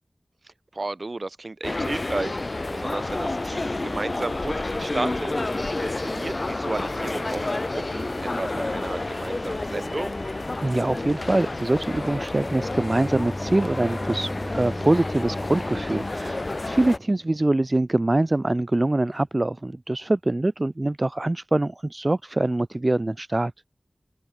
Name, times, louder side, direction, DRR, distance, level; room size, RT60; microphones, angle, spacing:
voice 1, 0.4-5.3 5.8-10.2, right 2 dB, 65° right, 0.8 m, -33 dB
sound 1, 1.6-17.0, left 2 dB, 55° left, 2.1 m, -30 dB
voice 2, 10.6-23.5, right 2 dB, 45° right, 0.3 m, -24 dB
Bowed string instrument, 12.3-17.1, left 1 dB, 15° left, 4.3 m, -36 dB
open air
wide cardioid pair, 50°, 0 cm